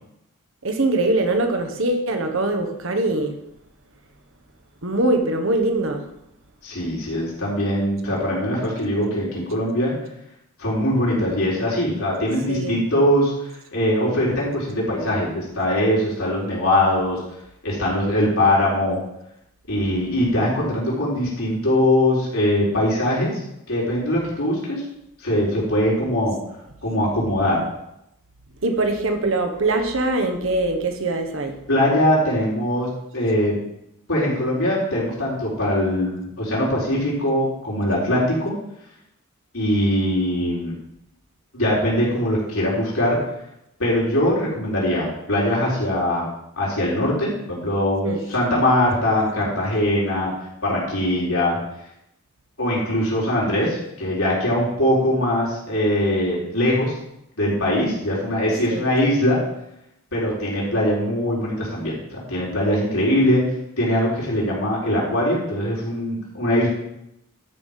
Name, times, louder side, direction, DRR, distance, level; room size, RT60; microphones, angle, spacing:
voice 1, 0.6-3.4 4.8-6.1 12.5-12.8 28.6-31.6 48.0-48.2 58.7-58.9, right 2 dB, 60° right, 5 dB, 1.3 m, -22 dB
voice 2, 6.6-9.9 10.6-13.3 13.7-17.2 17.6-19.0 19.7-23.4 23.7-24.8 25.2-26.4 26.8-27.6 31.7-32.9 33.1-33.5 34.1-38.5 39.5-40.7 41.5-43.2 43.8-46.3 46.6-50.3 50.6-51.6 52.6-57.0 57.4-59.4 60.1-63.4 63.8-66.7, left 1 dB, 70° left, -6 dB, 4.4 m, -21 dB
12.0 x 5.6 x 5.7 m, 0.83 s
head